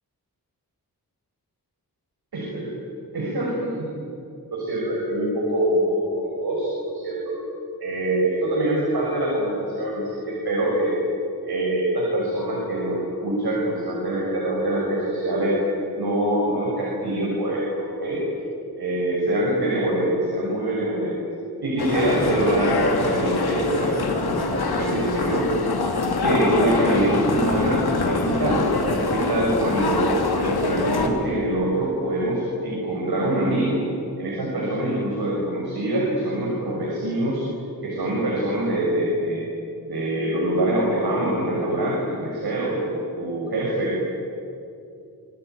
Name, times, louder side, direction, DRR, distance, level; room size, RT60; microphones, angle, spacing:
voice 1, 2.3-2.7 3.1-3.8 4.5-7.4 7.8-11.0 11.4-15.6 15.9-18.2 18.8-21.2 21.6-25.5 26.2-28.7 29.0-30.0 30.3-33.8 34.2-37.4 37.8-39.4 39.9-43.9, right 1 dB, 75° right, -3 dB, 6.7 m, -24 dB
sound 1, 21.8-31.1, left 3 dB, 75° left, 2.9 m, -24 dB
27.0 x 20.0 x 9.6 m, 2.6 s
wide cardioid pair, 160°, 38 cm